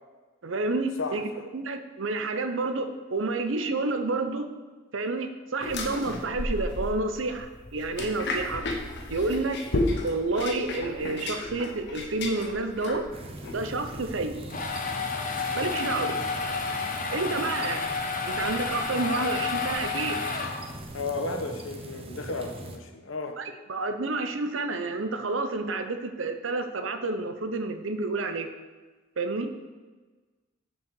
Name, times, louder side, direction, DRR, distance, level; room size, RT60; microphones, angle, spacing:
voice 1, 0.4-4.5 4.9-8.6 9.1-9.6 10.0-13.0 13.5-14.5 15.5-16.2 17.1-17.8 18.2-20.2 23.4-28.5 29.2-29.5, right 3 dB, 75° right, 8 dB, 0.8 m, -29 dB
voice 2, 1.0-1.4 20.9-23.4, left 3 dB, 85° left, 6 dB, 1.0 m, -33 dB
sound 1, 5.6-14.2, left 2 dB, 60° left, 1.2 m, -33 dB
sound 2, 13.1-22.8, right 1 dB, 30° right, 0.9 m, -41 dB
sound 3, 14.2-20.9, left 4 dB, 45° left, 1.0 m, -31 dB
7.4 x 5.6 x 6.7 m, 1.3 s
head